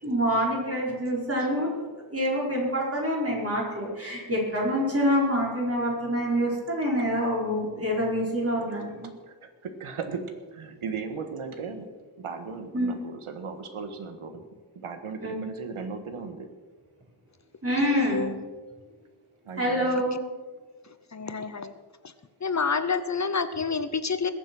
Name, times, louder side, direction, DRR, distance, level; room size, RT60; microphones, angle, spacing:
voice 1, 0.0-9.1 12.7-12.9 15.2-15.4 17.6-18.3 19.6-20.2, equal, 30° right, -4 dB, 4.7 m, -26 dB
voice 2, 9.2-11.9 12.2-14.4 14.7-16.5 19.4-20.0, right 5 dB, 85° right, 7 dB, 1.7 m, -37 dB
voice 3, 17.8-18.3 21.1-21.7 22.4-24.3, left 5 dB, 35° left, 12 dB, 0.7 m, -28 dB
21.0 x 7.2 x 6.1 m, 1.4 s
wide cardioid pair, 115°, 49 cm